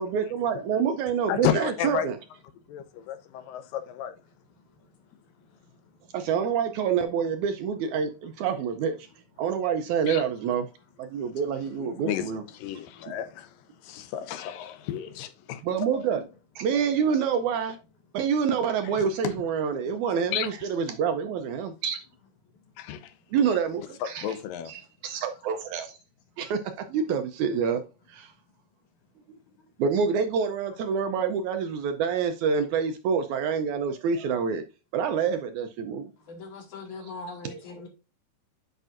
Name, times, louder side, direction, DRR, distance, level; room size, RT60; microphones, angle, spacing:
voice 1, 0.0-2.2 6.1-9.1 9.4-10.7 11.0-12.4 15.6-16.2 16.6-17.8 18.1-22.0 23.3-24.3 24.7-26.0 26.4-27.8 28.1-28.3 29.8-34.6 34.9-36.1 37.0-37.1 37.4-37.6, right 6 dB, 75° right, 1.8 m, -27 dB
voice 2, 1.3-2.1 2.7-4.2 10.1-10.2 11.8-16.1 18.8-19.3 20.3-20.5 22.8-23.1 24.2-24.7, left 10 dB, 85° left, 2.5 m, -32 dB
voice 3, 36.3-37.9, left 3 dB, 65° left, 3.0 m, -40 dB
9.1 x 5.2 x 2.4 m
omnidirectional pair, 3.9 m